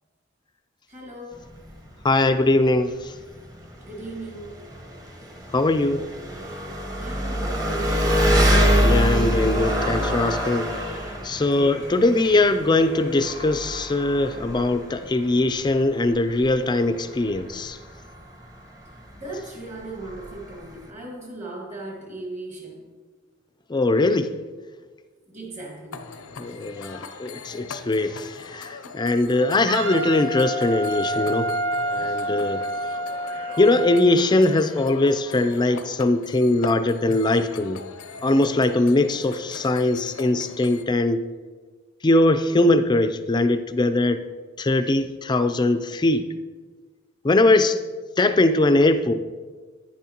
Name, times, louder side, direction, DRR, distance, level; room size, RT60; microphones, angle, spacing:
voice 1, 0.9-1.5 3.8-4.6 6.9-8.3 11.5-11.9 19.2-23.0 25.3-26.1, right 2 dB, 35° right, -1 dB, 1.8 m, -37 dB
Engine, 1.3-20.9, equal, 15° right, 1.0 m, -26 dB
voice 2, 2.0-3.1 5.5-6.0 8.8-17.8 23.7-24.3 26.4-31.5 31.9-32.6 33.6-37.8 38.2-41.2 42.0-44.2 44.6-46.2 47.2-47.8 48.2-49.1, left 2 dB, 20° left, 10 dB, 0.4 m, -21 dB
sound 1, 25.9-40.8, left 4 dB, 75° left, 0.6 m, -40 dB
Wind instrument woodwind instrument, 29.7-34.1, right 1 dB, 65° right, 0.9 m, -28 dB
10.5 x 10.0 x 2.9 m, 1.4 s
head